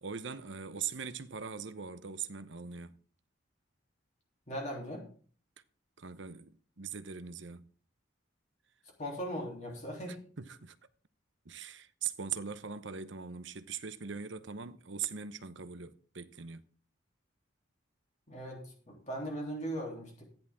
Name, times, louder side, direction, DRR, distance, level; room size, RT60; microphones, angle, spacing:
voice 1, 0.0-3.0 6.0-7.7 10.1-10.8 11.4-16.6, right 7 dB, 65° right, 0.9 m, -41 dB
voice 2, 4.5-5.1 9.0-10.2 18.3-20.2, equal, 35° left, 3.4 m, -39 dB
14.0 x 10.0 x 3.7 m
head